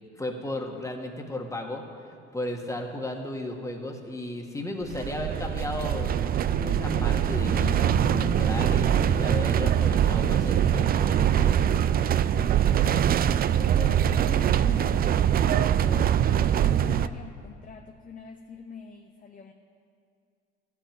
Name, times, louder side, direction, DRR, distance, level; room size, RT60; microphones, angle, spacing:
voice 1, 0.2-6.1 6.6-11.6, left 1 dB, 10° left, 2 dB, 1.6 m, -35 dB
sound 1, 4.8-17.1, right 10 dB, 30° right, 0.4 m, -23 dB
sound 2, 6.5-12.0, left 5 dB, 60° left, 2.1 m, -40 dB
voice 2, 12.3-19.5, left 5 dB, 25° left, 4 dB, 0.7 m, -42 dB
13.0 x 6.0 x 9.0 m, 2.4 s
supercardioid pair, 80°, 31 cm